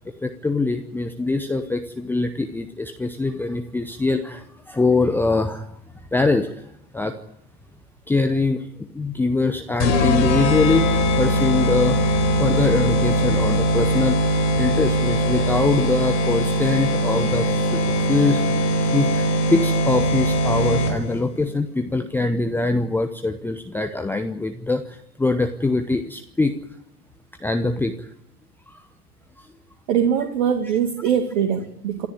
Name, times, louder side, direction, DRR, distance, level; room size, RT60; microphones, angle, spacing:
voice 1, 0.2-5.7 6.1-6.6 6.9-7.1 8.1-12.0 12.4-17.8 18.1-26.5 27.4-28.1 28.7-28.8, left 3 dB, 5° left, 6 dB, 0.9 m, -23 dB
sound 1, 9.8-21.2, equal, 50° left, 5.8 m, -21 dB
voice 2, 29.9-32.1, right 8 dB, 50° right, 3 dB, 2.4 m, -22 dB
27.0 x 13.5 x 9.5 m, 0.75 s
figure-of-eight pair, 95°, 47 cm